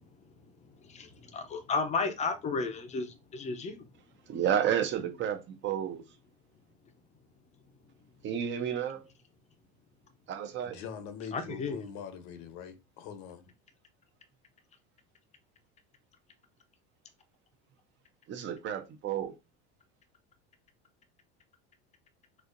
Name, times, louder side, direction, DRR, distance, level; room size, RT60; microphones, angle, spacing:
voice 1, 0.4-3.8 11.3-11.8, left 4 dB, 20° left, 0.6 m, -33 dB
voice 2, 4.3-6.0 8.2-9.1 10.3-10.8 18.3-19.3, right 9 dB, 35° right, 0.6 m, -31 dB
voice 3, 10.6-13.4, left 7 dB, 60° left, 0.9 m, -43 dB
4.3 x 2.5 x 2.5 m
supercardioid pair, 130°, 33 cm